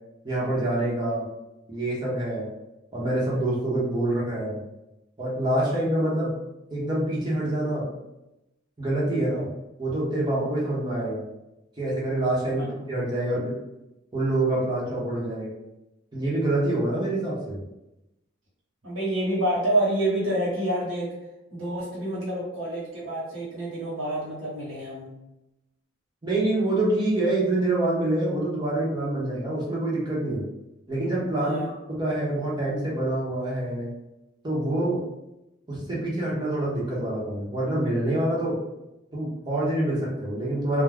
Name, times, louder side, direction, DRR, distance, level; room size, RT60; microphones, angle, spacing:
voice 1, 0.2-1.2 1.7-2.5 2.9-4.6 5.2-6.3 6.7-7.9 8.8-9.5 9.8-11.2 11.8-13.5 14.1-15.5 16.1-17.6 26.2-30.4 30.9-31.6 31.9-33.9 34.4-35.0 35.7-38.6 39.1-40.8, right 1 dB, 20° right, -6 dB, 0.8 m, -26 dB
voice 2, 18.8-21.1 21.5-25.1 31.4-31.7, right 1 dB, 75° right, -7 dB, 1.1 m, -28 dB
2.3 x 2.1 x 3.3 m, 0.92 s
head